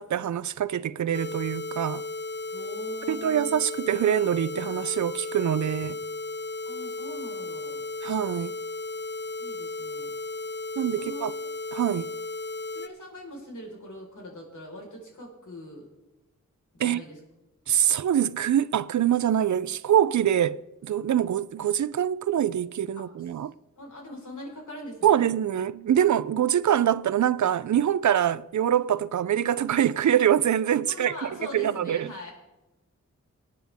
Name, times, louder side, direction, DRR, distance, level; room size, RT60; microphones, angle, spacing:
voice 1, 0.0-2.0 3.1-6.0 8.0-8.5 10.8-11.3 11.7-12.1 16.8-17.0 17.7-23.5 25.0-32.1, right 10 dB, 70° right, 0.5 m, -24 dB
sound 1, 1.1-12.9, left 2 dB, 35° left, 0.6 m, -35 dB
voice 2, 2.5-3.5 6.7-7.8 9.4-10.1 11.0-11.2 12.7-15.9 16.7-17.2 23.0-23.1 23.8-25.2 30.9-32.3, equal, 80° left, 4.6 m, -42 dB
20.0 x 9.2 x 3.5 m
wide cardioid pair, 65°, 30 cm